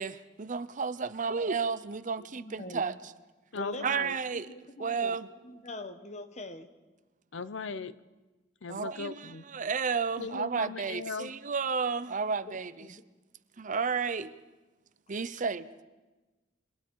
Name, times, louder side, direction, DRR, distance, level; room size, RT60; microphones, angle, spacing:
voice 1, 0.0-3.0 3.8-4.5 4.8-5.3 8.7-12.9 13.6-14.3 15.1-15.7, right 5 dB, 45° right, 14 dB, 0.7 m, -32 dB
voice 2, 2.2-2.8 3.5-5.2 5.4-6.7 12.8-13.0, left 1 dB, 40° left, 9 dB, 1.3 m, -43 dB
voice 3, 3.5-4.2 7.3-8.0 8.6-9.4 10.2-11.3, left 4 dB, 85° left, 15 dB, 0.7 m, -38 dB
27.0 x 24.0 x 4.7 m, 1.2 s
head